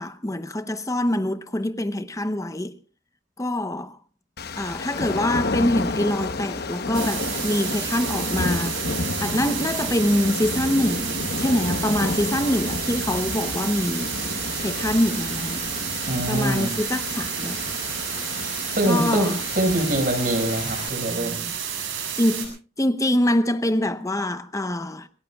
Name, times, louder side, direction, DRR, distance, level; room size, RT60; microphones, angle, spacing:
voice 1, 0.0-2.7 3.4-4.0 4.6-14.2 14.6-15.6 16.3-17.6 18.9-19.4 22.2-25.1, left 1 dB, 15° left, 0.8 m, -25 dB
sound 1, 4.4-20.9, left 3 dB, 55° left, 1.0 m, -31 dB
sound 2, 6.9-22.5, right 8 dB, 90° right, 7.1 m, -31 dB
voice 2, 16.1-16.7 18.8-21.4, right 1 dB, 45° right, 5.3 m, -24 dB
26.5 x 20.0 x 2.3 m
head